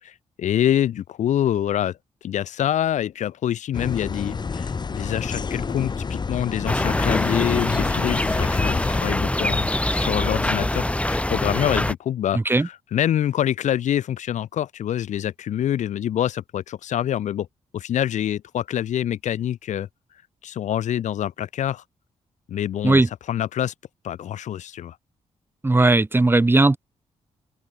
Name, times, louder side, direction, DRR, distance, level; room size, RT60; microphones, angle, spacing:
voice 1, 0.0-17.5 17.7-19.9 20.4-21.8 22.5-23.0 23.3-23.7 24.0-25.0, left 11 dB, 85° left, 5.7 m, -26 dB
sound 1, 3.7-9.1, left 5 dB, 35° left, 2.2 m, -28 dB
sound 2, 6.7-11.9, left 1 dB, 10° left, 3.5 m, -24 dB
voice 2, 25.6-26.8, right 2 dB, 20° right, 3.7 m, -17 dB
cardioid pair, 105°, 12 cm